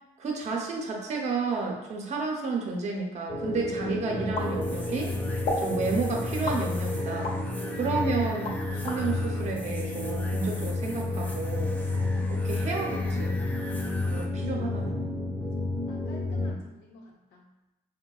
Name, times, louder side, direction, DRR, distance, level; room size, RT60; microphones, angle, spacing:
voice 1, 0.2-5.1 5.6-7.3 7.8-11.7 12.3-13.4 14.1-15.1 16.5-16.6, right 4 dB, 40° right, 0 dB, 0.7 m, -31 dB
sound 1, 3.3-16.5, left 2 dB, 30° left, 0.9 m, -30 dB
sound 2, 4.3-5.0 5.4-5.7 6.4-7.4 7.9-9.0, left 2 dB, 60° left, 0.7 m, -33 dB
sound 3, 4.4-14.3, left 1 dB, 10° left, 0.4 m, -45 dB
voice 2, 7.6-8.1 11.9-12.4 14.2-14.6 15.4-17.5, left 3 dB, 85° left, -2 dB, 0.8 m, -52 dB
4.4 x 2.2 x 2.3 m, 0.95 s
cardioid pair, 110°, 17 cm